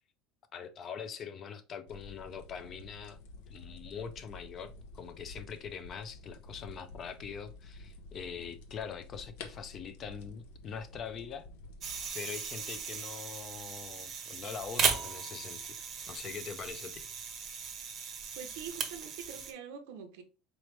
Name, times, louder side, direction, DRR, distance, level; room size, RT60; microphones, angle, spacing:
voice 1, 0.5-3.2 3.5-11.5 12.1-17.1, left 7 dB, 30° left, 0.5 m, -43 dB
sound 1, 1.9-12.1, left 3 dB, 80° left, 0.7 m, -50 dB
sound 2, 11.8-19.5, right 6 dB, 35° right, 0.7 m, -37 dB
voice 2, 18.4-20.2, right 7 dB, 85° right, 0.8 m, -44 dB
4.0 x 3.1 x 3.1 m
cardioid pair, 155°, 0 cm